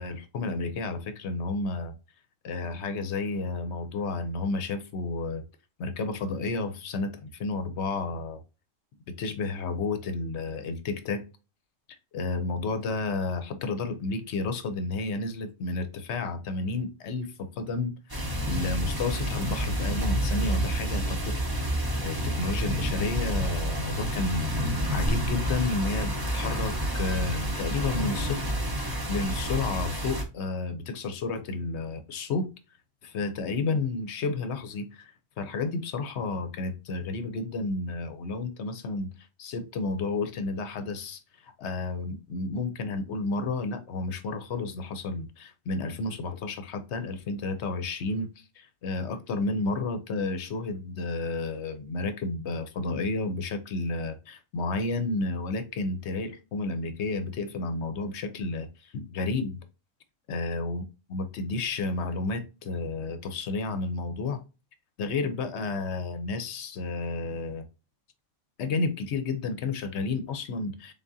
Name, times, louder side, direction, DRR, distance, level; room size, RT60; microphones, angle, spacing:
voice 1, 0.0-1.9 2.4-5.4 5.8-8.4 9.2-11.2 12.1-21.4 22.0-32.5 33.0-48.3 48.6-59.6 60.3-60.8 61.1-64.4 65.0-67.6 68.6-70.9, left 3 dB, 65° left, 0.9 m, -31 dB
sound 1, 18.1-30.2, equal, 20° right, 0.7 m, -29 dB
3.8 x 3.6 x 2.6 m
omnidirectional pair, 1.3 m